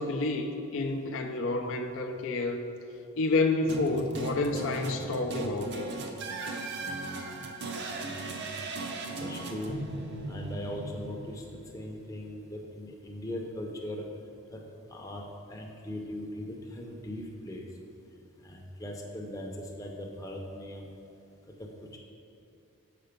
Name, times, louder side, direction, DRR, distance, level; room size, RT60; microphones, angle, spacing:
voice 1, 0.0-2.6 3.2-5.8, left 2 dB, 60° left, 3 dB, 0.4 m, -29 dB
sound 1, 3.7-11.9, right 2 dB, 50° right, 0.6 m, -38 dB
voice 2, 8.0-8.5 9.2-9.8 10.3-11.4 11.7-14.1 14.5-14.6 14.9-17.7 18.4-20.9 21.6-21.7, left 1 dB, 15° left, 0 dB, 0.6 m, -39 dB
6.7 x 5.4 x 5.1 m, 2.5 s
head